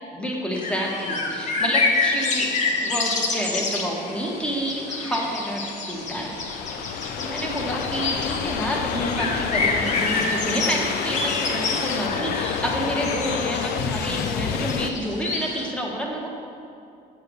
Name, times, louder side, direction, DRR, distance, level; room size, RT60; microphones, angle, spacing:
voice 1, 0.1-2.5 2.8-6.3 6.8-16.3, equal, 5° left, -2 dB, 1.4 m, -29 dB
sound 1, 0.5-15.7, left 3 dB, 45° left, 1.0 m, -28 dB
sound 2, 1.3-14.9, left 7 dB, 70° left, 0.5 m, -30 dB
7.8 x 4.7 x 6.3 m, 2.5 s
cardioid pair, 110°, 17 cm